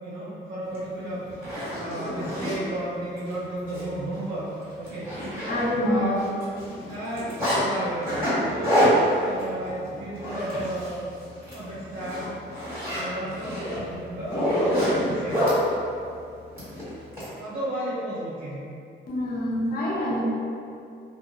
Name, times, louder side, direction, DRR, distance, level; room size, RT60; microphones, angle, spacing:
voice 1, 0.0-1.5 1.8-4.5 4.8-5.1 5.8-6.3 6.7-11.0 11.5-12.3 12.9-15.4 17.4-18.7, right 1 dB, 85° right, -9 dB, 0.6 m, -33 dB
Zipper (clothing), 0.7-0.8 1.3-2.6 3.2-3.3 3.7-3.8 4.2-4.3 4.6-5.9 6.2-7.6 8.0-11.0 11.3-11.6 11.9-15.6 16.6-17.3, equal, 10° right, 1.5 m, -27 dB
voice 2, 5.5-6.2 19.1-20.2, left 1 dB, 50° left, -6 dB, 0.8 m, -26 dB
3.0 x 2.1 x 2.4 m, 2.5 s
cardioid pair, 90°, 20 cm